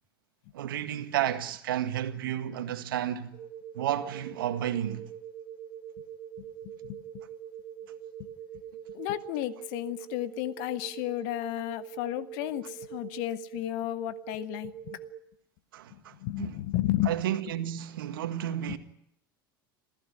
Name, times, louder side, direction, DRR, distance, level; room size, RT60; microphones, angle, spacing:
voice 1, 0.5-3.4 3.7-5.1 15.7-16.5 17.0-18.8, right 11 dB, 75° right, 1.8 m, -32 dB
sound 1, 3.3-15.2, right 9 dB, 50° right, 1.7 m, -44 dB
voice 2, 8.9-15.0 15.9-17.1 18.7-18.8, left 16 dB, 60° left, 1.5 m, -33 dB
27.5 x 15.0 x 9.7 m
hypercardioid pair, 75°, 12 cm